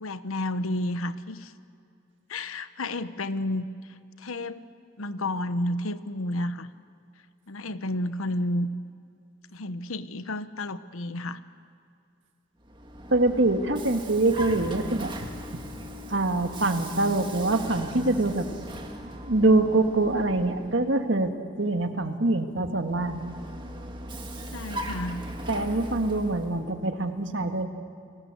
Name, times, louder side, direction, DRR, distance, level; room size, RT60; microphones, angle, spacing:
voice 1, 0.0-1.5 2.3-3.6 4.2-4.6 5.0-6.7 7.5-8.7 9.5-11.4 24.5-25.2, left 1 dB, 90° left, 13 dB, 1.0 m, -31 dB
Vehicle, 12.6-21.1 22.8-26.7, right 1 dB, 25° right, 1.9 m, -39 dB
voice 2, 13.1-15.1 16.1-18.5 19.2-21.3 21.6-23.2 25.5-27.7, right 2 dB, 60° right, 6 dB, 1.8 m, -24 dB
29.5 x 19.5 x 8.2 m, 2.4 s
head